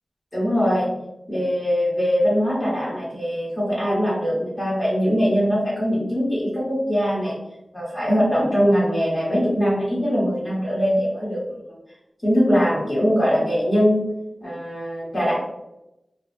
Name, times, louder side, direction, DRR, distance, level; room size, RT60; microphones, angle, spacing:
voice 1, 0.3-0.9 1.3-7.3 7.7-11.4 12.2-14.1 14.4-15.3, equal, 30° left, -9 dB, 1.0 m, -21 dB
2.3 x 2.1 x 3.1 m, 0.90 s
cardioid pair, 45°, 0 cm